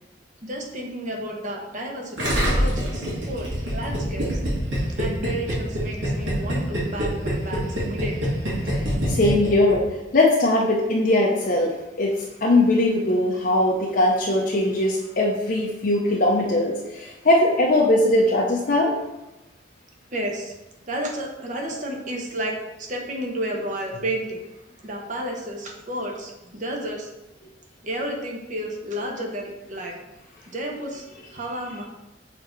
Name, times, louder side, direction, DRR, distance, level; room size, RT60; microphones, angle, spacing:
voice 1, 0.4-4.4 5.0-8.4 20.1-20.5 20.9-24.4 24.8-27.1 27.8-30.0 30.5-31.0 31.3-31.9, right 1 dB, 45° right, 1 dB, 1.1 m, -32 dB
Gurgling, 2.2-10.0, equal, 90° right, 2.4 m, -25 dB
voice 2, 9.1-9.8 10.1-11.7 12.0-18.9, left 1 dB, 50° left, -3 dB, 0.7 m, -20 dB
6.6 x 3.8 x 4.6 m, 0.98 s
head